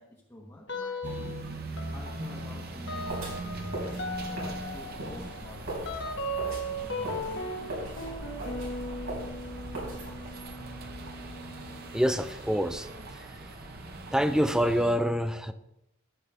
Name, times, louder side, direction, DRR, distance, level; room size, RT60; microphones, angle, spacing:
voice 1, 0.0-1.4 1.9-5.7 6.8-8.3, left 1 dB, 15° left, -4 dB, 1.1 m, -47 dB
sound 1, 0.7-1.4 1.8-12.1, equal, 60° left, 1.2 m, -38 dB
sound 2, 1.0-15.0, right 2 dB, 50° right, 0.9 m, -41 dB
sound 3, 3.1-10.5, right 1 dB, 90° right, 4.3 m, -40 dB
voice 2, 11.9-13.5 14.1-15.5, equal, 5° right, 10 dB, 0.5 m, -27 dB
14.0 x 7.4 x 3.4 m, 0.85 s
head